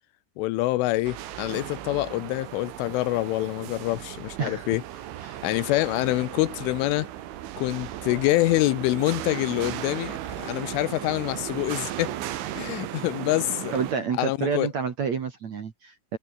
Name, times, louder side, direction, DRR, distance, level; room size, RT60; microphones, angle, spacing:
voice 1, 0.4-4.8 5.4-7.1 7.6-12.2 12.5-13.7 14.2-14.7, left 18 dB, 80° left, 3.1 m, -26 dB
sound 1, 1.0-13.9, right 13 dB, 70° right, 4.1 m, -36 dB
voice 2, 13.7-16.2, right 6 dB, 50° right, 2.4 m, -29 dB
omnidirectional pair, 5.9 m